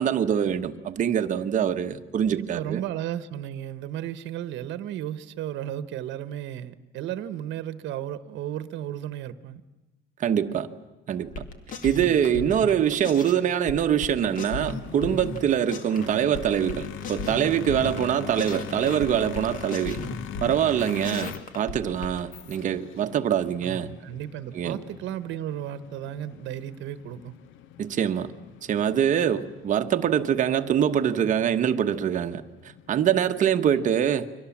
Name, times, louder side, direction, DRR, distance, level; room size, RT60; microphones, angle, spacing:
voice 1, 0.0-2.8 10.2-10.7 11.1-11.4 11.8-20.0 20.4-23.9 24.5-24.8 27.8-28.3 28.7-32.4 32.9-34.3, right 9 dB, 40° right, 1.1 m, -24 dB
voice 2, 2.3-9.6 23.6-27.3, right 11 dB, 65° right, 1.1 m, -34 dB
sound 1, 11.3-13.4 13.7-16.0 16.3-18.1 18.4-22.2, left 3 dB, 40° left, 2.2 m, -36 dB
sound 2, 14.2-33.3, left 11 dB, 70° left, 1.0 m, -43 dB
29.5 x 24.0 x 7.3 m
cardioid pair, 170°, 20 cm